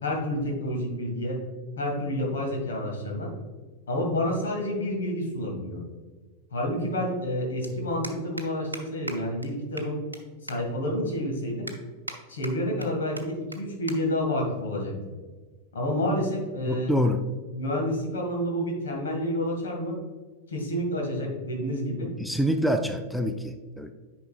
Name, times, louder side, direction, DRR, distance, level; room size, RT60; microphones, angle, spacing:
voice 1, 0.0-1.4 1.8-3.3 3.9-5.8 6.5-10.0 10.4-11.7 12.3-15.1 15.7-16.9 17.5-20.0 20.5-22.1, left 1 dB, 65° left, 1 dB, 1.9 m, -29 dB
sound 1, 7.6-7.7 8.0-8.5 8.7-8.8 9.1-9.2 9.4-9.5 9.8-10.2 10.5-10.6 11.0-11.1 11.7-12.2 12.4-12.9 13.2-13.3 13.5-13.6 13.9-14.0 14.3-14.5 15.3-15.6, right 1 dB, 85° right, 0.6 m, -38 dB
voice 2, 16.7-17.3 22.2-23.9, equal, ahead, 7 dB, 0.4 m, -26 dB
9.3 x 5.3 x 2.4 m, 1.4 s
figure-of-eight pair, 90°, 0 cm